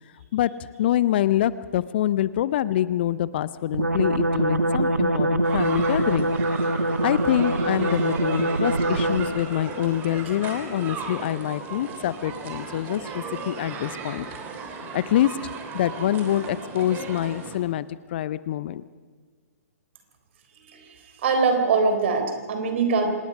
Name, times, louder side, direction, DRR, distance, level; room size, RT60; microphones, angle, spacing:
voice 1, 0.8-6.3 7.0-14.3 14.9-15.4 15.7-18.8, left 12 dB, 40° left, 17 dB, 0.6 m, -25 dB
sound 1, 3.7-9.5, right 1 dB, 80° right, 1.8 m, -24 dB
sound 2, 5.4-17.6, right 4 dB, 20° right, 2.7 m, -36 dB
voice 2, 21.2-23.1, right 4 dB, 45° right, 6 dB, 4.0 m, -22 dB
26.0 x 20.0 x 5.5 m, 1.5 s
figure-of-eight pair, 125°, 9 cm